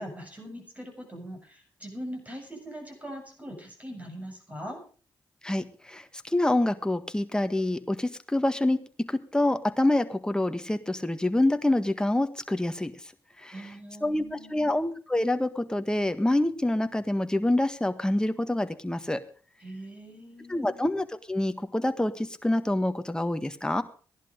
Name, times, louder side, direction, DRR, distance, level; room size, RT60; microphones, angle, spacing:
voice 1, 0.0-4.8 13.5-14.8 19.6-20.9, equal, 20° right, 3 dB, 7.3 m, -41 dB
voice 2, 5.4-8.8 9.1-12.9 13.4-13.7 14.0-19.2 20.5-23.8, left 1 dB, 10° left, 9 dB, 1.5 m, -26 dB
15.5 x 11.0 x 5.2 m, 0.39 s
cardioid pair, 65°, 8 cm